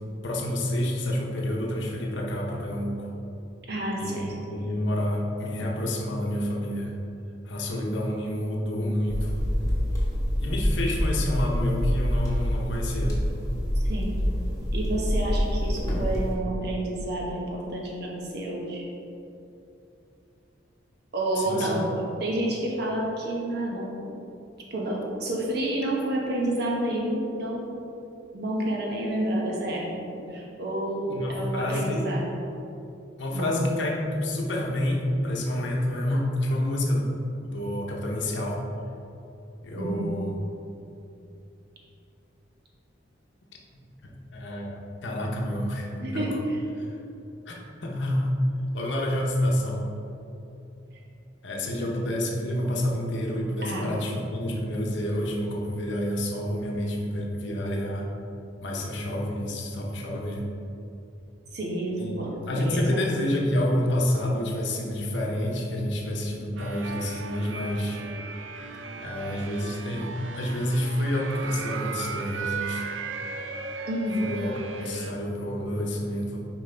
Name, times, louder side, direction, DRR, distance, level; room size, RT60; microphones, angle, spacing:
voice 1, 0.2-3.1 4.0-6.9 7.4-9.4 10.4-13.2 21.4-21.8 31.1-32.0 33.2-38.6 39.6-40.4 43.8-46.4 46.8-47.0 47.5-48.4 48.7-49.8 51.4-58.1 58.6-60.5 62.0-68.0 68.9-72.8 74.2-76.5, left 1 dB, 70° left, -1 dB, 0.8 m, -29 dB
voice 2, 3.7-4.3 13.7-14.1 14.7-18.8 21.1-24.0 24.7-27.8 28.3-32.2 33.3-33.6 39.7-40.1 46.0-46.6 51.8-51.9 53.6-53.9 61.5-63.1 73.9-74.2, right 1 dB, 55° right, -2 dB, 1.1 m, -29 dB
sound 1, 9.1-16.4, equal, 20° left, 1.3 m, -26 dB
sound 2, 66.6-75.1, right 4 dB, 80° right, 0.5 m, -36 dB
5.4 x 5.1 x 3.8 m, 2.8 s
head